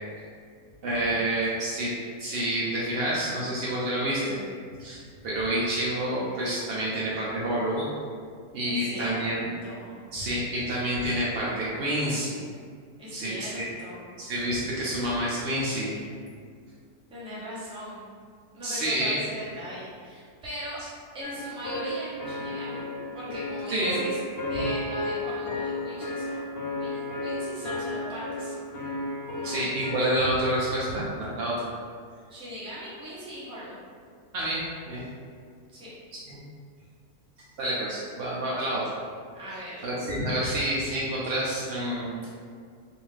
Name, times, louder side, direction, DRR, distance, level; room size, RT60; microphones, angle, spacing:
voice 1, 0.8-1.9 2.2-4.4 4.8-7.9 8.5-9.5 10.1-12.4 13.1-13.7 14.2-16.0 18.6-19.2 23.7-24.0 29.4-31.7 34.3-35.0 36.3-36.4 37.6-38.8 39.8-42.2, right 1 dB, 85° right, -6 dB, 0.5 m, -28 dB
voice 2, 8.6-9.3 9.6-10.1 13.0-14.2 17.1-18.1 18.5-20.8 21.1-22.9 23.1-24.2 24.5-26.4 26.8-28.5 29.3-29.7 32.3-33.8 35.7-35.9 37.4-37.5 39.3-39.8, equal, 10° right, -10 dB, 0.3 m, -39 dB
sound 1, 21.2-30.7, left 1 dB, 65° left, 0.7 m, -33 dB
2.6 x 2.4 x 3.1 m, 2.1 s
omnidirectional pair, 1.6 m